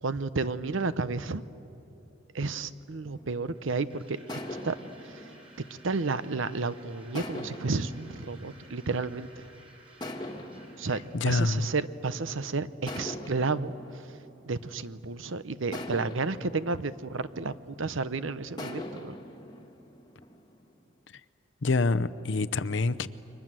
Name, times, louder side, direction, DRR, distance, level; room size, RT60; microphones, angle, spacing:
voice 1, 0.0-1.4 2.3-4.2 4.6-4.7 5.0-5.2 5.8-9.4 10.8-14.2 14.4-19.1, right 3 dB, 75° right, 0.8 m, -32 dB
sound 1, 3.1-3.7 4.3-6.5 7.1-9.3 10.0-12.3 12.9-15.1 15.7-18.0 18.6-20.8, left 1 dB, 20° left, 1.5 m, -42 dB
sound 2, 3.5-11.2, right 2 dB, 25° right, 4.8 m, -56 dB
voice 2, 11.1-11.7 21.6-23.1, left 3 dB, 65° left, 0.7 m, -26 dB
30.0 x 24.0 x 7.6 m
head